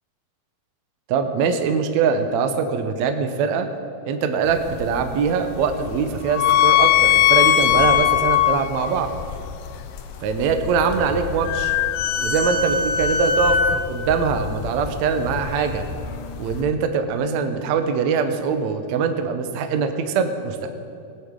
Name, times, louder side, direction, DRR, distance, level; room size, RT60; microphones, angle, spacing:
voice 1, 1.1-3.7 4.0-9.1 10.2-11.7 12.2-15.9 16.4-20.7, right 6 dB, 90° right, 7 dB, 1.5 m, -22 dB
sound 1, 4.5-16.6, left 10 dB, 75° left, 2.1 m, -22 dB
19.5 x 10.0 x 3.8 m, 2.7 s
omnidirectional pair, 4.5 m